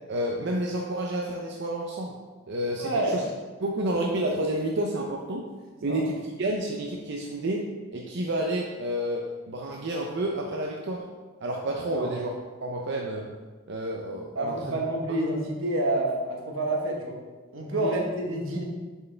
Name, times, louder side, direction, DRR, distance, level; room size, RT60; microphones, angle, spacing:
voice 1, 0.1-2.2 2.5-3.2 3.6-5.4 5.8-11.0 11.4-12.3 12.6-13.3 13.7-14.8 17.8-17.9, right 1 dB, 60° right, -1 dB, 0.6 m, -30 dB
voice 2, 2.8-3.1 5.9-6.0 11.9-12.1 14.3-17.2 17.5-18.6, right 1 dB, 85° right, 0 dB, 1.2 m, -28 dB
6.9 x 4.5 x 3.4 m, 1.3 s
head